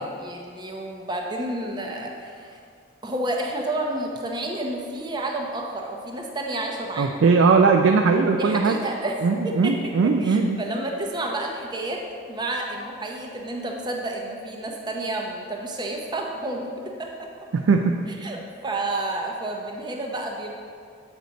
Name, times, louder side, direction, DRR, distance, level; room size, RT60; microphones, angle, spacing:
voice 1, 0.0-2.6 3.0-7.2 8.4-9.2 9.4-9.7 10.2-12.0 12.3-17.3 18.2-20.5, right 1 dB, 20° right, 1 dB, 0.6 m, -30 dB
voice 2, 7.0-8.8 9.2-10.6 17.5-18.0, right 4 dB, 65° right, 3 dB, 0.3 m, -19 dB
8.0 x 4.9 x 4.0 m, 2.3 s
head